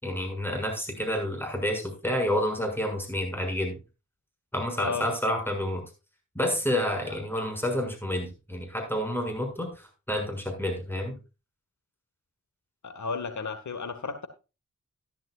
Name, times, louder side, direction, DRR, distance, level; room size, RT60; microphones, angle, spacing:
voice 1, 0.0-3.7 4.5-5.8 6.3-11.2, left 1 dB, 5° left, 6.8 m, -29 dB
voice 2, 4.8-5.1 7.1-7.2 12.8-14.3, left 5 dB, 75° left, 1.9 m, -33 dB
14.0 x 11.0 x 2.5 m
cardioid pair, 45°, 29 cm